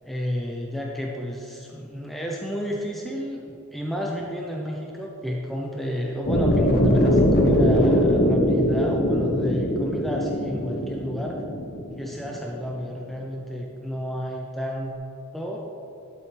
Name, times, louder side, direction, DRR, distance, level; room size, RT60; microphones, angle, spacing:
voice 1, 0.0-11.4 12.0-14.9 15.3-15.6, equal, ahead, -2 dB, 0.6 m, -31 dB
sound 1, 6.3-12.4, equal, 45° left, 1.1 m, -21 dB
11.5 x 7.4 x 3.4 m, 2.9 s
head